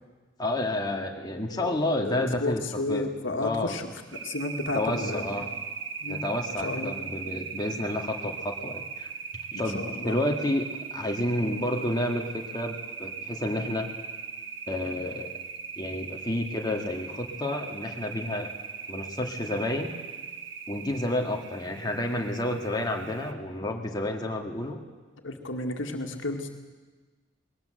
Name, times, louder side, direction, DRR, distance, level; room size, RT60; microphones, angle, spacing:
voice 1, 0.4-2.6 2.9-3.1 3.4-3.7 4.7-5.5 6.1-9.1 9.5-10.7 10.9-12.7 13.0-13.9 14.7-15.3 15.8-18.5 18.9-19.9 20.7-24.8, left 1 dB, 20° left, 1 dB, 2.0 m, -30 dB
voice 2, 1.5-3.9 4.2-5.2 6.0-6.2 6.6-7.0 7.5-7.6 9.5-10.2 11.4-11.5 25.2-26.5, left 2 dB, 90° left, 4 dB, 2.0 m, -32 dB
sound 1, 4.1-23.3, right 6 dB, 80° right, 1.3 m, -39 dB
20.5 x 18.5 x 7.9 m, 1.3 s
head